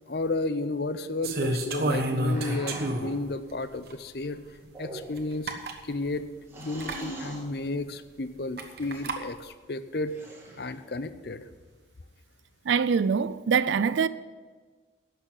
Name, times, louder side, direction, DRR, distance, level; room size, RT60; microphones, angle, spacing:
voice 1, 0.1-4.4 4.8-5.5 5.9-6.3 6.6-10.1 10.6-11.4, left 2 dB, 55° left, 0.6 m, -32 dB
sound 1, 1.2-3.3 3.9-4.0 5.2-5.3 5.5-5.8 6.8-7.0 8.6-9.2, right 1 dB, 55° right, 1.2 m, -29 dB
sound 2, 2.2-3.1 4.6-5.4 6.5-7.5 8.7-9.1 10.1-10.8, right 1 dB, 15° right, 2.1 m, -43 dB
voice 2, 12.7-14.1, right 6 dB, 80° right, 0.4 m, -24 dB
11.5 x 6.9 x 8.2 m
head